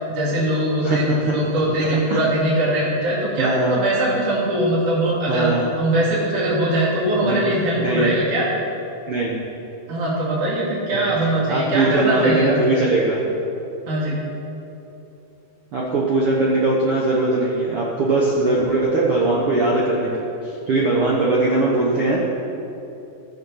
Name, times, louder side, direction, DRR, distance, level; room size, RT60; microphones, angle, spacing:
voice 1, 0.1-5.5 5.8-8.5 9.9-12.6 13.9-14.2, right 1 dB, 45° right, -5 dB, 3.4 m, -21 dB
voice 2, 1.8-2.2 3.4-3.7 5.3-5.7 7.2-7.5 7.8-8.1 9.1-9.3 11.0-13.2 15.7-22.2, right 2 dB, 65° right, -4 dB, 1.4 m, -20 dB
15.5 x 6.7 x 5.8 m, 2.9 s
omnidirectional pair, 4.3 m